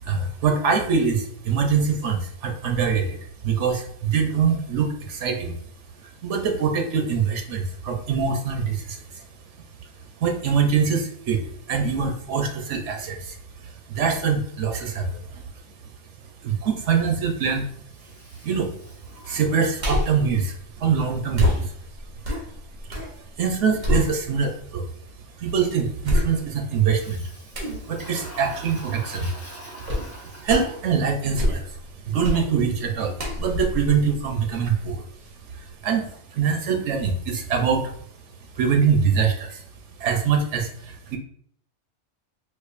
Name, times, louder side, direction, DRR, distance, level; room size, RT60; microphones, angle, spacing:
voice 1, 0.0-5.6 6.0-9.2 9.8-9.9 10.2-15.4 16.4-17.7 18.4-18.7 19.2-21.7 22.9-24.9 25.4-27.3 27.6-29.3 29.8-35.0 35.5-37.9 38.5-39.6 40.0-41.2, right 6 dB, 85° right, 3 dB, 1.0 m, -24 dB
Toilet flush, 17.9-20.2 26.9-31.1, right 1 dB, 15° left, 1.0 m, -44 dB
sound 1, 19.8-20.3 21.3-23.1 23.5-24.6 25.1-25.2 26.0-26.7 27.5-27.8 29.9-30.1 30.5-30.8 31.2-31.8 32.2-32.5 33.2-34.8 35.2-35.3, left 1 dB, 45° right, 0.9 m, -26 dB
4.6 x 2.4 x 2.4 m, 0.62 s
omnidirectional pair, 1.2 m